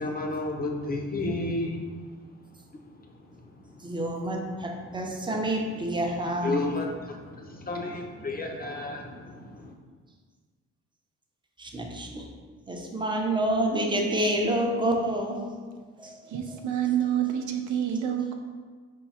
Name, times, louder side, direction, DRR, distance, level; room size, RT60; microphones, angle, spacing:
voice 1, 0.0-1.8 6.4-9.7, left 2 dB, 30° left, 2 dB, 0.6 m, -32 dB
voice 2, 3.8-6.6 11.6-12.3 12.7-15.6 16.0-16.6, right 1 dB, 15° right, 1 dB, 0.6 m, -28 dB
voice 3, 16.3-18.3, right 10 dB, 80° right, 4 dB, 0.5 m, -27 dB
4.6 x 2.3 x 4.1 m, 1.5 s
cardioid pair, 90°, 30 cm